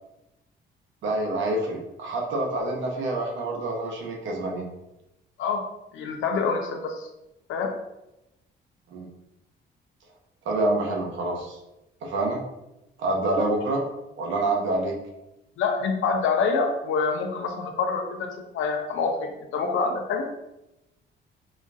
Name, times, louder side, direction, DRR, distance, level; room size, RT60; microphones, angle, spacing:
voice 1, 1.0-4.7 8.9-9.1 10.4-11.6 12.0-12.4 13.0-13.8 14.2-14.9, right 2 dB, 75° right, 0 dB, 0.9 m, -27 dB
voice 2, 5.9-7.1 7.5-7.7 15.6-20.4, left 5 dB, 80° left, 3 dB, 0.6 m, -26 dB
5.0 x 2.4 x 2.5 m, 0.93 s
cardioid pair, 90°, 20 cm